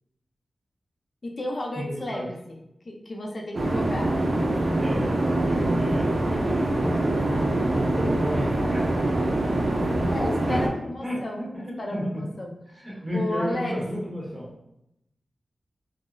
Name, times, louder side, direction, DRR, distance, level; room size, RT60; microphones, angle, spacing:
voice 1, 1.2-2.4 2.8-4.1 5.5-5.6 10.1-11.5 11.8-12.9 13.1-13.8, left 1 dB, 55° left, 0 dB, 0.5 m, -33 dB
voice 2, 1.9-2.3 4.8-9.1 10.5-10.7 11.0-12.2 12.8-14.5, equal, 30° right, -6 dB, 1.3 m, -32 dB
sound 1, 3.5-10.7, right 1 dB, 65° right, 0.5 m, -24 dB
3.6 x 2.0 x 2.5 m, 0.83 s
cardioid pair, 60°, 0 cm